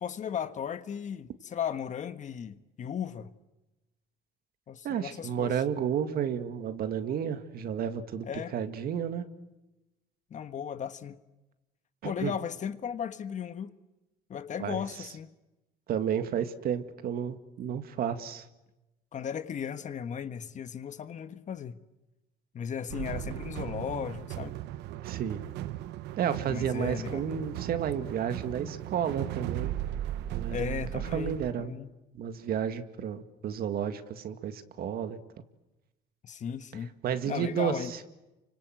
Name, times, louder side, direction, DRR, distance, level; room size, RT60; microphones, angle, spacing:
voice 1, 0.0-3.3 4.7-5.6 8.2-8.5 10.3-11.2 12.0-13.7 14.3-15.3 19.1-21.8 22.5-24.6 26.5-27.2 30.5-31.9 36.2-36.9 37.3-37.9, left 8 dB, 45° left, 1.5 m, -36 dB
voice 2, 4.8-8.3 8.5-9.2 12.0-12.3 14.6-14.8 15.9-18.5 25.0-25.4 26.2-29.7 30.3-30.8 31.1-31.7 32.1-35.2 37.0-38.0, right 8 dB, 65° right, 2.1 m, -32 dB
sound 1, 22.9-31.5, right 13 dB, 85° right, 1.0 m, -37 dB
29.0 x 25.5 x 7.9 m
cardioid pair, 110°, 17 cm